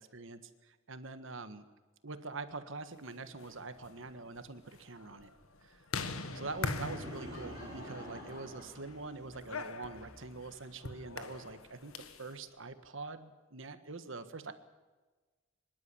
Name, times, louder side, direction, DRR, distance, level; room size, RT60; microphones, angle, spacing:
voice 1, 0.0-1.7 2.0-5.3 5.6-5.8 6.3-11.9 12.2-14.5, right 3 dB, 65° right, 10 dB, 1.5 m, -44 dB
sound 1, 3.2-12.3, left 3 dB, 85° left, 1.5 m, -43 dB
sound 2, 6.1-9.5 9.9-10.3, right 1 dB, 20° right, 4.4 m, -49 dB
Laughter / Crowd, 6.8-9.6, left 1 dB, 45° left, 5.3 m, -53 dB
24.5 x 12.0 x 9.8 m, 1.3 s
head